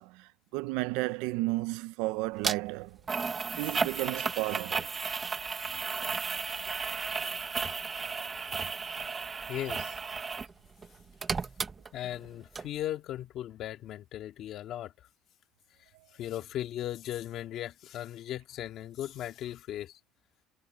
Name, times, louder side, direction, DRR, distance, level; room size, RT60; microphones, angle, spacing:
voice 1, 0.0-3.0 3.6-4.9, right 21 dB, 90° right, 0.6 m, -33 dB
sound 1, 2.4-2.6 3.1-10.5 10.8-12.3 12.6-12.7, right 5 dB, 20° right, 1.0 m, -34 dB
voice 2, 9.5-10.0 11.9-14.9 16.1-20.0, left 12 dB, 45° left, 2.3 m, -37 dB
cardioid pair, 175°, 0 cm